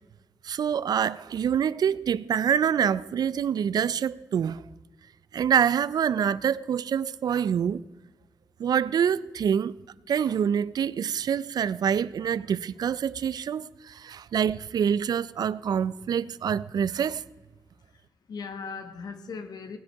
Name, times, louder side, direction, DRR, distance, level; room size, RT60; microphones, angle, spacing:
voice 1, 0.4-4.6 5.3-7.8 8.6-9.8 10.1-17.2, right 8 dB, 75° right, 0.4 m, -26 dB
voice 2, 17.7-19.8, left 5 dB, 80° left, 1.3 m, -39 dB
18.0 x 9.8 x 4.6 m
wide cardioid pair, 165°, 7 cm